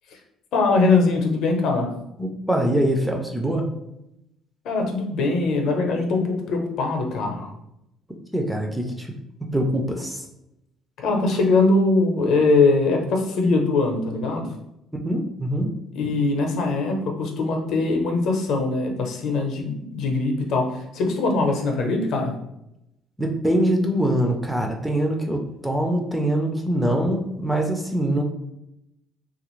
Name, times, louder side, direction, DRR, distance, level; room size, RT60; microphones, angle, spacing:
voice 1, 0.5-1.9 4.6-7.5 11.0-14.5 15.9-22.3, left 3 dB, 60° left, 2 dB, 0.6 m, -22 dB
voice 2, 2.2-3.6 8.3-9.1 9.5-10.3 15.0-15.7 23.2-28.2, right 1 dB, 5° right, 2 dB, 0.3 m, -23 dB
3.3 x 2.4 x 3.0 m, 0.84 s
cardioid pair, 170°, 0 cm